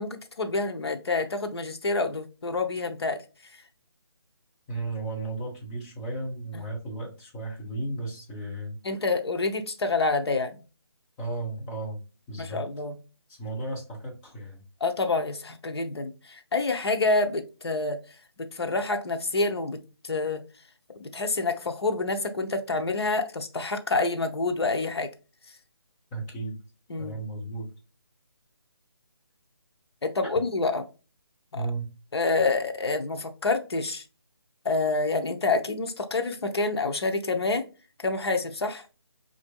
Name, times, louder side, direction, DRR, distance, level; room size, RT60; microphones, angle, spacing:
voice 1, 0.0-3.2 6.5-6.6 8.8-10.6 12.4-13.0 14.8-18.0 18.4-20.4 21.0-25.1 26.9-27.2 30.0-30.8 31.5-31.6 32.1-34.0 34.6-37.7 38.0-38.8, left 3 dB, 70° left, 0.7 m, -27 dB
voice 2, 4.7-8.8 11.2-12.0 12.3-12.6 13.3-14.6 26.1-26.6 27.0-27.7 31.5-31.9, right 2 dB, 15° left, 0.9 m, -34 dB
4.3 x 2.5 x 2.2 m
figure-of-eight pair, 155°, 14 cm